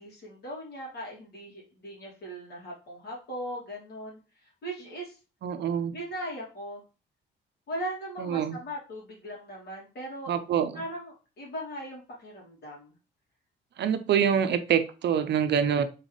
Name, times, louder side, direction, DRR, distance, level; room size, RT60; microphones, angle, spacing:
voice 1, 0.0-5.2 5.9-6.8 7.7-10.3 10.7-12.9, right 1 dB, 55° left, -3 dB, 2.6 m, -39 dB
voice 2, 5.4-5.9 8.2-8.6 10.3-10.7 13.8-15.8, right 8 dB, 60° right, 10 dB, 0.6 m, -25 dB
4.0 x 3.3 x 3.9 m, 0.33 s
cardioid pair, 90°, 20 cm